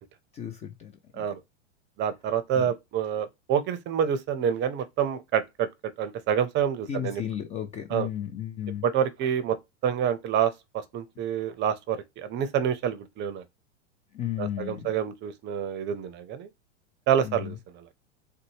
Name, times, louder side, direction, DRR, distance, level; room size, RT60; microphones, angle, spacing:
voice 1, 0.3-1.2 2.6-2.7 6.9-8.9 14.1-14.9 17.2-17.6, left 10 dB, 20° left, 0.3 m, -34 dB
voice 2, 2.0-5.7 6.0-7.2 7.9-8.1 8.8-9.6 9.8-13.4 14.4-16.5 17.1-17.9, right 8 dB, 30° right, 0.6 m, -27 dB
4.0 x 2.1 x 3.0 m
hypercardioid pair, 115°, 36 cm